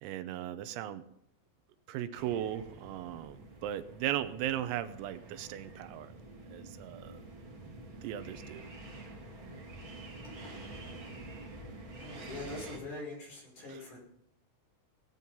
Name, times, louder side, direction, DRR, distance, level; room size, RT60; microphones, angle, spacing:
voice 1, 0.0-1.1 1.9-6.1 6.5-7.2 8.0-8.7, right 11 dB, 85° right, 12 dB, 3.6 m, -37 dB
sound 1, 2.1-12.8, right 2 dB, 35° right, 2.4 m, -48 dB
voice 2, 11.9-14.0, left 2 dB, 40° left, -1 dB, 6.7 m, -43 dB
19.0 x 9.3 x 5.6 m, 0.75 s
omnidirectional pair, 5.9 m